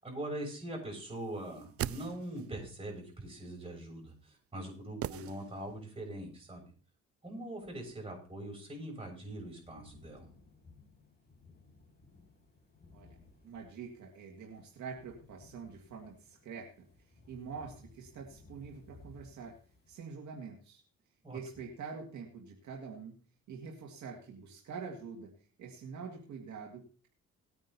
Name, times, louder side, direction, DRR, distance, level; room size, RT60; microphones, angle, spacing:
voice 1, 0.0-6.7 7.2-10.3 21.2-21.4, right 1 dB, 20° right, -1 dB, 6.8 m, -42 dB
sound 1, 1.4-2.6 5.0-5.9 6.2-6.3, right 12 dB, 50° right, 0.4 m, -40 dB
sound 2, 9.2-20.0, left 3 dB, 30° left, 3.6 m, -60 dB
voice 2, 13.4-16.9 17.3-19.5 19.9-20.8 21.3-23.2 23.5-25.3 25.6-27.1, right 5 dB, 70° right, 0 dB, 2.0 m, -45 dB
19.0 x 9.2 x 2.8 m, 0.40 s
cardioid pair, 90°, 30 cm